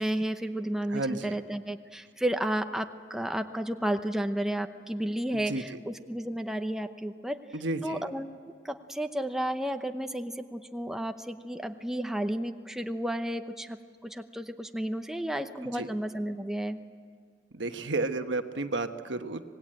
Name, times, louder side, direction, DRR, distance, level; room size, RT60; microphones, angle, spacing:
voice 1, 0.0-7.4 7.8-16.8, right 1 dB, 5° right, 6 dB, 0.8 m, -32 dB
voice 2, 0.9-1.4 5.3-5.8 7.5-8.0 15.7-15.9 17.5-19.4, right 2 dB, 85° right, 8 dB, 1.2 m, -32 dB
26.0 x 19.5 x 9.0 m, 2.2 s
head